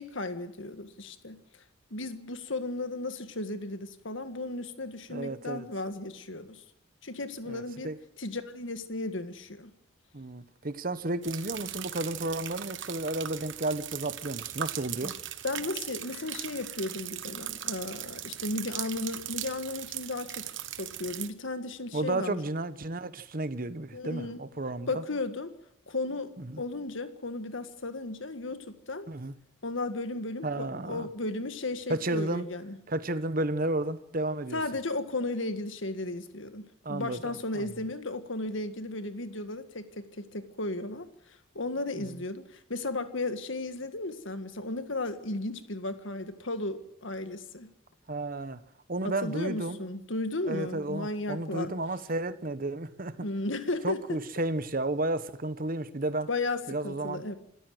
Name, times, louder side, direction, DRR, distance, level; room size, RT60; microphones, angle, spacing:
voice 1, 0.0-1.4 1.9-6.6 7.0-7.9 8.2-9.7 15.4-20.5 20.8-22.4 23.9-24.4 24.9-25.5 25.9-26.3 26.6-29.1 29.6-32.8 34.5-41.1 41.6-47.7 49.0-51.7 53.2-54.2 56.3-57.4, left 2 dB, 65° left, 1.8 m, -35 dB
voice 2, 5.1-5.7 7.5-8.0 10.1-15.1 21.9-25.0 26.4-26.6 29.1-29.3 30.4-31.1 31.9-32.5 32.9-34.6 36.8-37.7 42.0-42.2 48.1-48.6 48.9-49.8 50.4-53.3 53.8-56.3 56.7-57.2, right 2 dB, 45° right, 1.0 m, -32 dB
sound 1, 11.2-21.3, right 11 dB, 60° right, 1.2 m, -39 dB
26.5 x 14.0 x 7.8 m
head